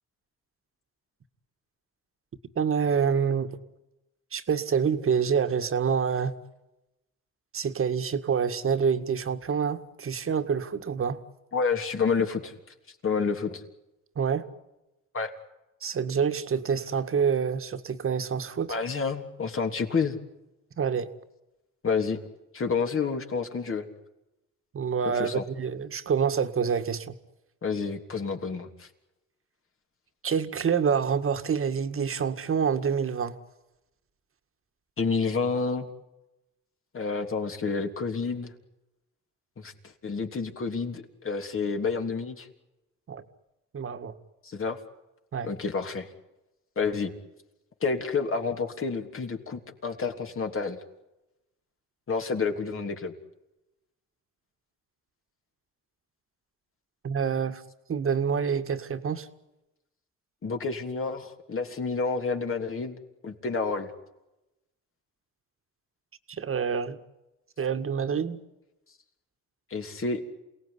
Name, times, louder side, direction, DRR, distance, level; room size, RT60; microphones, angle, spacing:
voice 1, 2.6-3.5 4.3-6.3 7.5-11.2 14.2-14.4 15.8-18.8 20.8-21.1 24.7-27.1 30.2-33.4 43.1-43.2 43.7-44.1 45.3-45.5 57.0-57.6 57.9-59.3 66.3-67.0 67.6-68.4, right 6 dB, 45° right, 8 dB, 1.9 m, -27 dB
voice 2, 11.5-12.5 13.0-13.6 15.1-15.3 18.7-20.2 21.8-22.2 22.5-23.9 25.1-25.4 27.6-28.9 35.0-35.9 36.9-38.5 39.6-39.7 40.0-42.5 44.4-44.8 45.4-46.1 46.7-47.1 47.8-50.8 52.1-53.1 60.4-63.9 69.7-70.2, left 5 dB, 45° left, 4 dB, 3.3 m, -29 dB
28.5 x 18.5 x 9.9 m, 0.97 s
cardioid pair, 90°, 30 cm